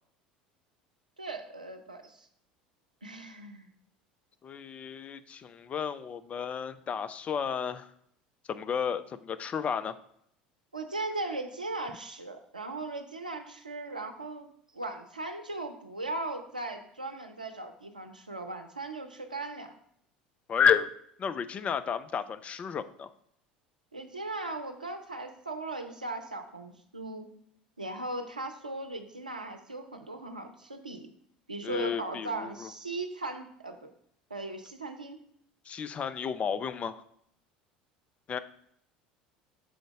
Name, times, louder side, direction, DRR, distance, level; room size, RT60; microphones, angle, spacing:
voice 1, 1.2-2.3 3.0-3.7 10.7-14.5 14.7-19.7 23.9-27.3 27.8-31.1 31.5-33.9 34.3-35.2, right 2 dB, 85° right, 6 dB, 0.6 m, -38 dB
voice 2, 4.4-7.9 8.5-10.0 20.5-20.9 21.2-23.1 31.6-32.7 35.7-37.0 38.3-38.4, left 7 dB, 30° left, 12 dB, 0.4 m, -31 dB
6.3 x 3.9 x 4.8 m, 0.70 s
figure-of-eight pair, 70°, 4 cm